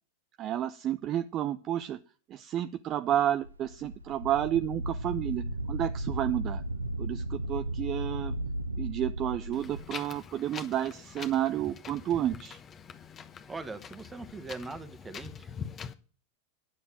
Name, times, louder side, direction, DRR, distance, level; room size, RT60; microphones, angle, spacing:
voice 1, 0.4-2.0 2.3-6.6 7.0-8.3 8.8-12.6, right 11 dB, 30° right, 10 dB, 0.5 m, -31 dB
Wind, 3.4-9.8, right 1 dB, 80° right, 0.8 m, -35 dB
Wind 2, 9.5-15.9, left 7 dB, 25° left, 1.0 m, -44 dB
voice 2, 13.5-15.5, right 3 dB, 10° right, 11 dB, 1.2 m, -41 dB
10.0 x 6.9 x 7.3 m, 0.39 s
figure-of-eight pair, 90°, 0 cm